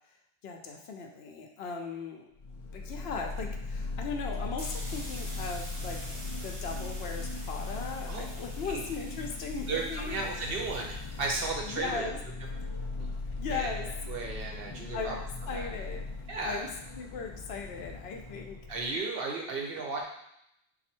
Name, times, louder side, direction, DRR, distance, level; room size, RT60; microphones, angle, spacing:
voice 1, 0.4-2.3 2.7-10.2 11.4-12.2 13.4-13.9 14.9-16.0 16.4-16.7 17.0-18.6, left 5 dB, 85° left, 2 dB, 0.9 m, -38 dB
sound 1, 2.4-19.0, left 3 dB, 55° left, 0.3 m, -39 dB
sound 2, 4.6-12.0, right 1 dB, 45° right, 1.2 m, -47 dB
voice 2, 9.7-12.1 13.0-13.1 13.5-13.7 14.1-15.1 15.5-15.7 16.3-16.7 18.7-20.0, right 3 dB, 65° right, 0 dB, 1.0 m, -34 dB
4.1 x 2.6 x 4.4 m, 0.77 s
omnidirectional pair, 1.0 m